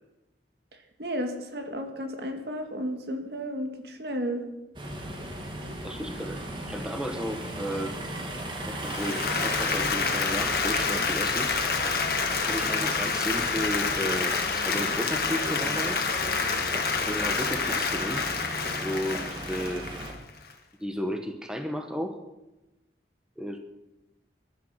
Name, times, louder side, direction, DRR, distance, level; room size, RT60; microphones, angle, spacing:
voice 1, 1.0-4.4, equal, 70° right, 5 dB, 2.2 m, -33 dB
sound 1, 4.8-20.1, right 1 dB, 25° right, 2.3 m, -37 dB
voice 2, 5.8-7.9 8.7-11.8 12.4-16.1 17.1-18.2 18.8-19.9 20.8-22.2 23.4-23.6, equal, 5° right, 5 dB, 1.3 m, -33 dB
Applause, 8.8-20.5, left 4 dB, 55° left, 1.9 m, -28 dB
21.0 x 12.0 x 5.8 m, 0.96 s
head